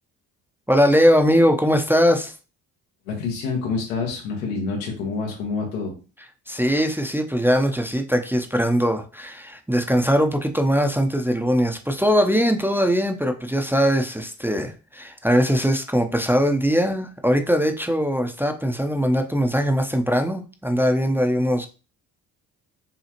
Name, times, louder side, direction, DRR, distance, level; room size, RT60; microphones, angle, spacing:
voice 1, 0.7-2.3 6.5-21.7, equal, 5° right, 4 dB, 0.6 m, -21 dB
voice 2, 3.0-6.0, left 4 dB, 90° left, -1 dB, 1.3 m, -27 dB
5.6 x 2.4 x 2.9 m, 0.34 s
hypercardioid pair, 50°, 41 cm